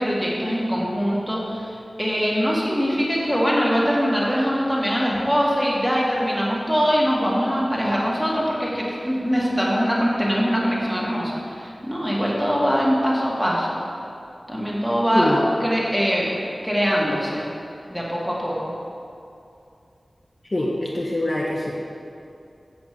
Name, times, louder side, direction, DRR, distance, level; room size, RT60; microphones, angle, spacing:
voice 1, 0.0-13.8 14.5-16.3 16.6-17.5 17.9-18.7, equal, 5° right, -5 dB, 2.0 m, -22 dB
voice 2, 20.5-21.7, left 1 dB, 35° left, -5 dB, 1.0 m, -24 dB
7.9 x 5.2 x 6.8 m, 2.5 s
wide cardioid pair, 70°, 0 cm